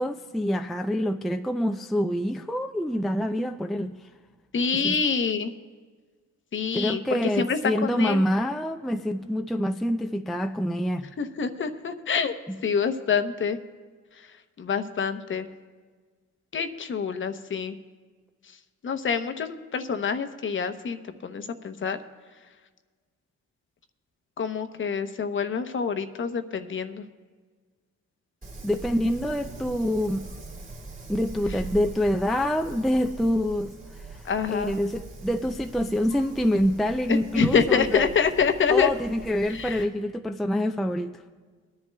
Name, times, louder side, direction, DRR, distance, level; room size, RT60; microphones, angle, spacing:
voice 1, 0.0-4.0 4.7-5.0 6.7-11.1 12.5-12.6 28.6-30.3 31.1-33.7 34.5-38.1 38.7-41.2, equal, ahead, 6 dB, 0.3 m, -26 dB
voice 2, 4.5-5.5 6.5-8.2 11.2-12.3 12.6-13.6 14.6-15.5 16.5-17.8 18.8-22.0 24.4-27.0 34.3-34.7 37.1-38.9 39.5-39.8, left 6 dB, 40° left, 9 dB, 0.8 m, -26 dB
Wind, 28.4-39.8, right 3 dB, 30° right, 2.1 m, -42 dB
22.5 x 10.5 x 2.2 m, 1.5 s
cardioid pair, 90°, 30 cm